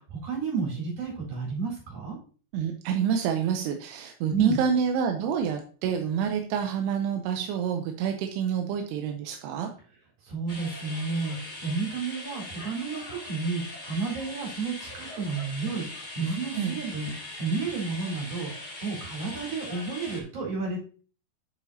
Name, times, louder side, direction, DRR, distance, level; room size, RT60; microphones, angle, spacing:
voice 1, 0.1-2.2 4.3-4.7 10.3-15.9 16.2-17.1 17.4-18.5 18.8-20.9, right 4 dB, 50° right, -3 dB, 5.5 m, -31 dB
voice 2, 2.5-9.7 16.5-16.8, right 7 dB, 85° right, 4 dB, 2.8 m, -28 dB
sound 1, 10.5-20.2, left 1 dB, 35° left, 0.7 m, -41 dB
9.9 x 7.2 x 2.8 m, 0.40 s
omnidirectional pair, 4.6 m